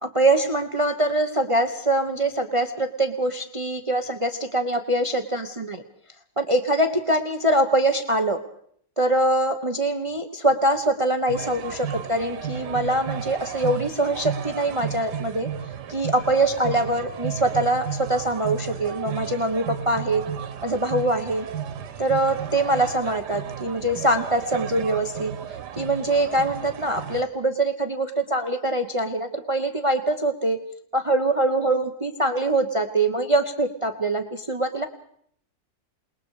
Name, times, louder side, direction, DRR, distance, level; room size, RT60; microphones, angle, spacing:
voice 1, 0.0-5.8 6.4-8.4 9.0-15.5 15.9-20.2 20.6-21.5 22.0-25.3 25.8-30.6 30.9-34.9, right 1 dB, 20° right, 7 dB, 1.0 m, -23 dB
sound 1, 11.3-27.2, right 8 dB, 85° right, 1.6 m, -33 dB
28.0 x 20.5 x 4.9 m, 0.64 s
omnidirectional pair, 1.7 m